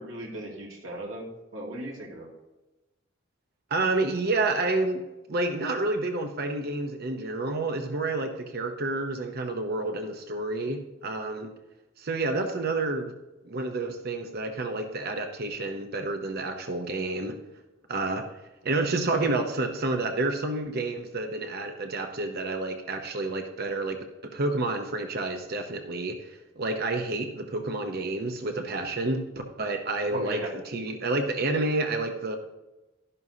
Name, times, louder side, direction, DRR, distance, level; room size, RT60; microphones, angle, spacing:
voice 1, 0.0-2.3 30.1-30.5, right 1 dB, 75° right, -2 dB, 2.4 m, -36 dB
voice 2, 3.7-5.0 5.3-11.5 12.0-13.1 13.4-17.4 17.9-18.3 18.6-29.2 29.6-32.4, right 2 dB, 50° right, 5 dB, 0.8 m, -29 dB
12.0 x 11.0 x 2.8 m, 1.1 s
head